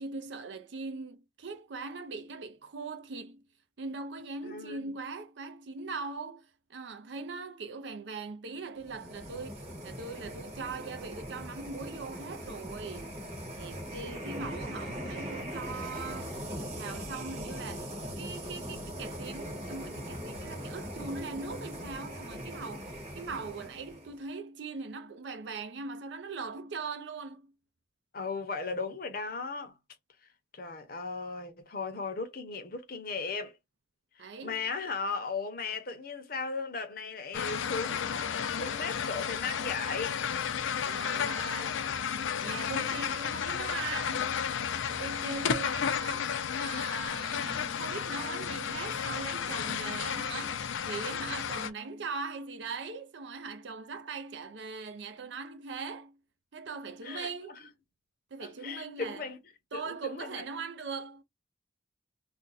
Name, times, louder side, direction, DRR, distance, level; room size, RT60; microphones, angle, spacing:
voice 1, 0.0-3.4 3.8-13.1 13.6-17.9 18.2-27.5 34.2-34.6 40.8-41.9 42.4-44.5 44.8-56.2 56.5-57.6 58.3-59.2 59.7-61.2, right 4 dB, 65° right, 0.5 m, -40 dB
voice 2, 4.4-5.0 28.1-29.7 30.5-33.6 34.2-40.2 57.0-57.3 58.4-59.4 59.7-60.4, left 4 dB, 50° left, 0.8 m, -37 dB
sound 1, 8.8-24.2, equal, 35° right, 1.1 m, -40 dB
sound 2, 37.3-51.7, left 7 dB, 80° left, 0.4 m, -33 dB
2.5 x 2.2 x 4.0 m
head